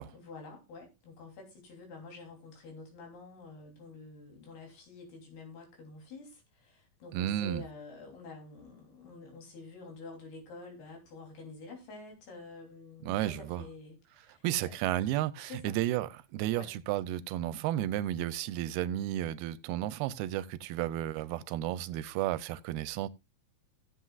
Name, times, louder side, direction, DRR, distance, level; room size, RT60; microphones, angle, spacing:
voice 1, 0.1-14.8 15.4-15.8 16.6-16.7, left 3 dB, 80° left, 5.2 m, -48 dB
voice 2, 7.1-7.6 13.0-13.6 14.4-23.1, right 13 dB, 90° right, 2.6 m, -33 dB
16.5 x 7.8 x 2.4 m
omnidirectional pair, 4.4 m